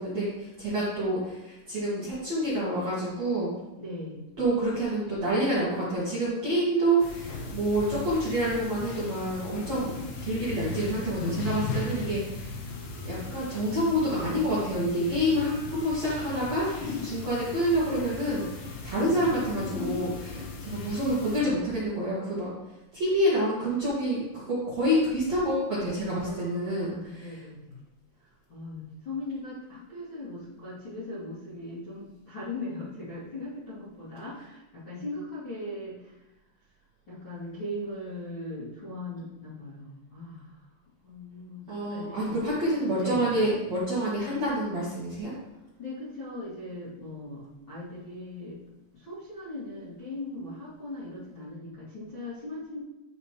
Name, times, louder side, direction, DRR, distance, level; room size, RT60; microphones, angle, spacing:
voice 1, 0.0-3.5 4.4-9.9 10.2-12.6 13.0-18.5 18.8-22.5 22.9-27.4 41.7-45.3, right 1 dB, 50° right, -9 dB, 2.1 m, -28 dB
voice 2, 3.8-4.3 26.1-27.8 28.2-36.2 37.1-40.6 41.0-42.4 42.9-43.2 45.8-48.6 48.9-52.8, left 2 dB, 35° left, -12 dB, 2.1 m, -39 dB
sound 1, 7.0-21.4, left 4 dB, 70° left, 3.4 m, -37 dB
12.0 x 5.4 x 3.2 m, 0.98 s
omnidirectional pair, 5.9 m